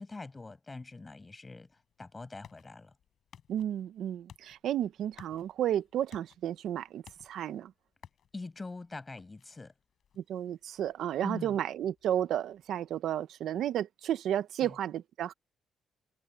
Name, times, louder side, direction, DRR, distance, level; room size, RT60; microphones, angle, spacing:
voice 1, 0.0-2.9 8.3-9.7 11.2-11.6 14.6-14.7, left 3 dB, 25° left, 5.8 m, -43 dB
sound 1, 1.7-13.2, left 9 dB, 60° left, 5.6 m, -60 dB
voice 2, 3.5-7.7 10.2-15.3, right 11 dB, 75° right, 0.9 m, -32 dB
cardioid pair, 90°, 0 cm